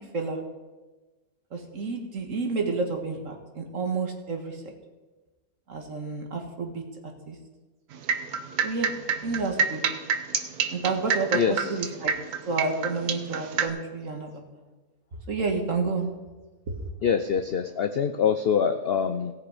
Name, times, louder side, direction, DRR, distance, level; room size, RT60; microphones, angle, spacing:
voice 1, 1.5-4.6 5.7-6.8 7.3-7.4 8.6-8.9 9.2-9.8 10.7-12.1 12.5-14.6 15.3-16.1 16.7-16.8, right 3 dB, 55° right, 3 dB, 1.9 m, -30 dB
sound 1, 7.9-13.7, right 6 dB, 80° right, 1.4 m, -27 dB
voice 2, 11.3-11.7 17.0-19.3, left 7 dB, 65° left, 9 dB, 0.6 m, -25 dB
17.5 x 6.9 x 4.9 m, 1.2 s
omnidirectional pair, 1.6 m